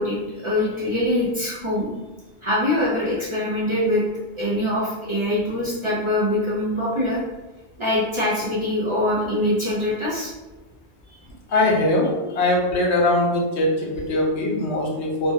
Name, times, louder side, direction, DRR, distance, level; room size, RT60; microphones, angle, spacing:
voice 1, 0.0-1.9 2.4-4.0 4.4-7.2 7.8-10.3, left 1 dB, 40° right, -7 dB, 0.5 m, -23 dB
voice 2, 11.5-15.3, left 1 dB, 80° left, -2 dB, 1.0 m, -21 dB
3.2 x 2.2 x 2.6 m, 1.1 s
omnidirectional pair, 1.1 m